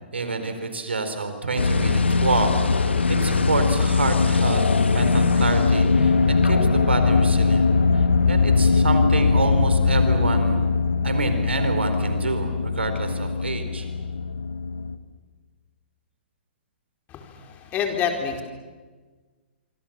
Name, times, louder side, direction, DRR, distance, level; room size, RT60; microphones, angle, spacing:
voice 1, 0.1-4.6 4.9-7.7 8.3-10.7 11.0-13.9, right 3 dB, 85° right, 8 dB, 4.2 m, -27 dB
sound 1, 1.6-15.0, left 4 dB, 85° left, 1.7 m, -20 dB
voice 2, 17.1-18.4, left 7 dB, 25° left, 3 dB, 4.2 m, -27 dB
26.0 x 25.5 x 7.4 m, 1.4 s
hypercardioid pair, 125°, 6 cm